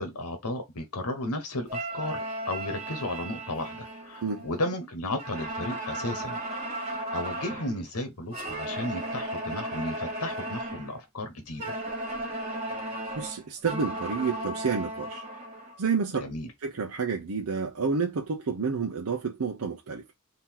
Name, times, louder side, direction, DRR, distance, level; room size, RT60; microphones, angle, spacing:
voice 1, 0.0-6.4 6.7-11.7 16.2-16.5, left 1 dB, 90° left, 1.1 m, -34 dB
sound 1, 1.7-4.8 5.2-7.8 8.3-10.9 11.6-15.8, right 1 dB, 30° right, 1.6 m, -35 dB
voice 2, 12.9-15.3 15.8-16.2 16.6-20.0, right 5 dB, 85° right, 0.6 m, -29 dB
3.8 x 2.8 x 4.4 m
head